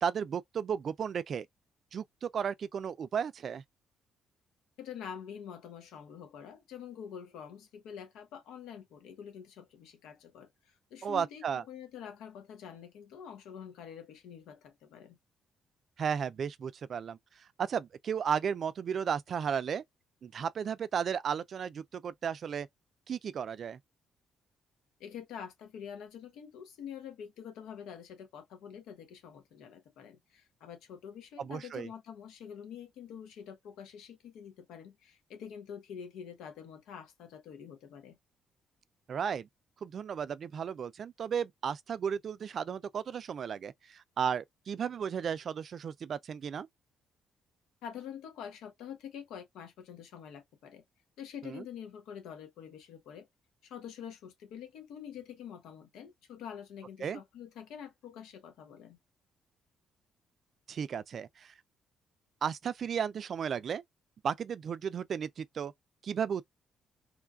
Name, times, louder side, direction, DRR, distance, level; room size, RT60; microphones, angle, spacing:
voice 1, 0.0-1.5 1.9-3.6 11.0-11.6 16.0-17.2 17.6-19.8 20.2-22.7 23.1-23.8 31.4-31.9 39.1-39.5 39.8-46.7 51.4-51.6 57.0-57.2 60.7-61.5 62.4-63.8 64.2-65.7 66.0-66.4, right 7 dB, 55° right, 0.3 m, -34 dB
voice 2, 4.8-15.2 25.0-38.2 47.8-50.8 51.2-53.3 53.6-59.0, left 8 dB, 90° left, 0.9 m, -46 dB
3.1 x 2.3 x 2.3 m
cardioid pair, 90°, 0 cm